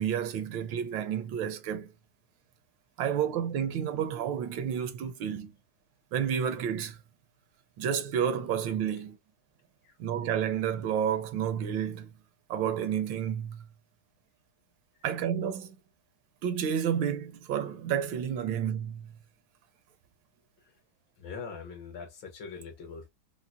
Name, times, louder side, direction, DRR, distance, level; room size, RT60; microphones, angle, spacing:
voice 1, 0.0-1.9 3.0-5.5 6.1-7.0 7.8-9.2 10.0-12.1 12.5-13.6 15.0-15.7 16.4-19.1, right 8 dB, 80° right, 1.3 m, -30 dB
voice 2, 21.2-23.1, left 5 dB, 75° left, 1.9 m, -42 dB
5.6 x 2.1 x 2.3 m
omnidirectional pair, 2.1 m